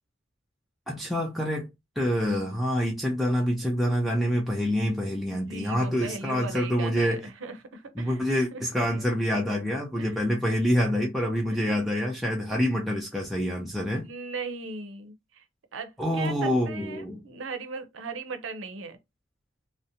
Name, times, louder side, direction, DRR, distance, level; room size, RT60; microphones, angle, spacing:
voice 1, 0.9-1.7 2.0-7.2 8.0-14.1 16.0-17.2, equal, ahead, 0.4 m, -26 dB
voice 2, 5.3-8.2 8.5-8.6 10.0-10.2 11.5-11.8 14.0-15.4 15.7-19.0, right 4 dB, 75° right, 0.5 m, -38 dB
2.5 x 2.1 x 2.7 m
head